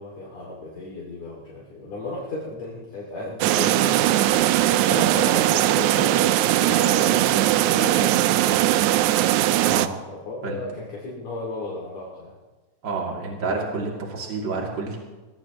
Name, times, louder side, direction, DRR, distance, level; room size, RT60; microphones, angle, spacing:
voice 1, 0.0-8.6 9.5-9.8 10.1-12.4, left 2 dB, 50° left, -4 dB, 3.6 m, -35 dB
sound 1, 3.4-9.9, right 14 dB, 90° right, 1.6 m, -20 dB
voice 2, 12.8-15.0, right 3 dB, 35° right, -1 dB, 3.2 m, -29 dB
22.0 x 18.5 x 3.1 m, 1.2 s
omnidirectional pair, 4.0 m